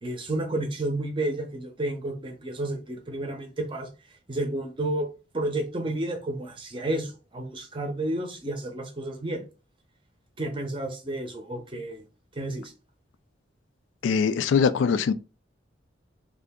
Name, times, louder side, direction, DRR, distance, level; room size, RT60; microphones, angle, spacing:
voice 1, 0.0-3.9 4.3-5.1 5.3-9.5 10.4-12.0 12.3-12.7, right 1 dB, 25° right, 0.6 m, -31 dB
voice 2, 14.0-15.1, left 6 dB, 75° left, 0.3 m, -22 dB
2.7 x 2.4 x 3.4 m
head